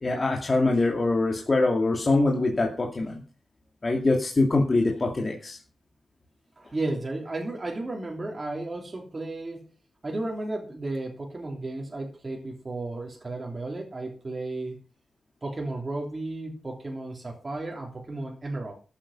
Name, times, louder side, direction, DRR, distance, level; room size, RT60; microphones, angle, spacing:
voice 1, 0.0-3.2 3.8-5.6, left 2 dB, 25° left, 0 dB, 2.7 m, -24 dB
voice 2, 6.6-9.6 10.0-14.8 15.4-18.7, right 2 dB, 25° right, -1 dB, 3.4 m, -33 dB
14.0 x 8.9 x 5.7 m, 0.36 s
wide cardioid pair, 150°, 0 cm